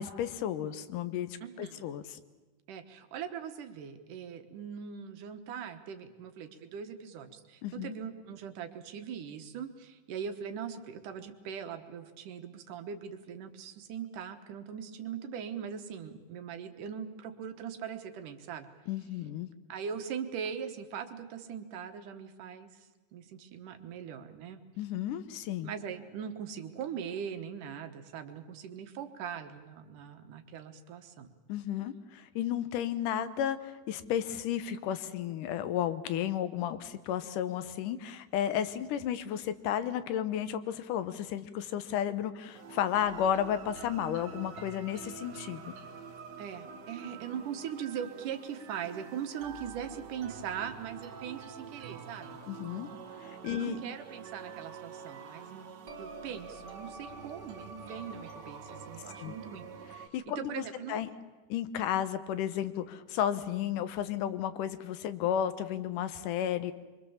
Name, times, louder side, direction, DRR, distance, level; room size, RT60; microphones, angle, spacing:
voice 1, 0.0-1.3 1.6-2.2 7.6-8.0 18.9-19.5 24.8-25.7 31.5-45.6 52.5-52.9 53.2-53.8 59.2-59.3 60.1-61.1 61.5-66.7, left 10 dB, 90° left, 12 dB, 2.6 m, -33 dB
voice 2, 1.4-1.8 2.7-18.7 19.7-24.6 25.6-31.3 46.4-52.4 53.5-55.7 56.0-59.7 59.9-61.0, right 8 dB, 85° right, 7 dB, 2.9 m, -41 dB
sound 1, 42.5-60.1, right 5 dB, 55° right, 1.3 m, -46 dB
24.0 x 24.0 x 7.2 m, 1.2 s
omnidirectional pair, 3.6 m